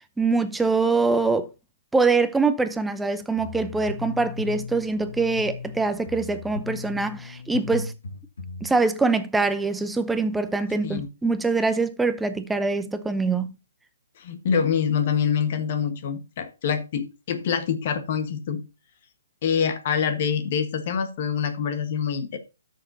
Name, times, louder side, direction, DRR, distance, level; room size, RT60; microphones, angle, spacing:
voice 1, 0.2-1.5 1.9-7.9 8.6-13.5, right 3 dB, 5° right, 0.7 m, -24 dB
sound 1, 3.4-8.7, left 4 dB, 80° left, 3.2 m, -37 dB
voice 2, 14.2-18.6 19.4-22.4, left 7 dB, 45° left, 1.3 m, -25 dB
13.0 x 6.6 x 2.7 m
hypercardioid pair, 145°, 0 cm